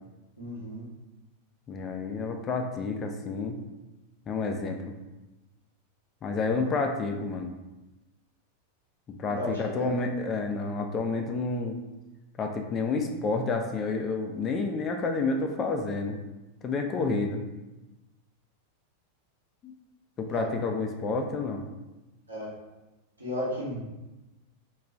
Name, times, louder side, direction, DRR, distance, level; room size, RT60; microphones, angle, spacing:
voice 1, 0.4-0.8 9.3-9.5 20.3-20.5 22.3-22.5 23.2-23.8, equal, 80° right, -7 dB, 0.9 m, -33 dB
voice 2, 1.7-3.6 4.3-4.9 6.2-7.5 9.2-11.8 12.4-16.2 16.6-17.4 19.6-19.7 20.2-21.6, left 3 dB, 25° left, 4 dB, 0.3 m, -29 dB
2.3 x 2.2 x 3.7 m, 1.0 s
figure-of-eight pair, 90°, 0 cm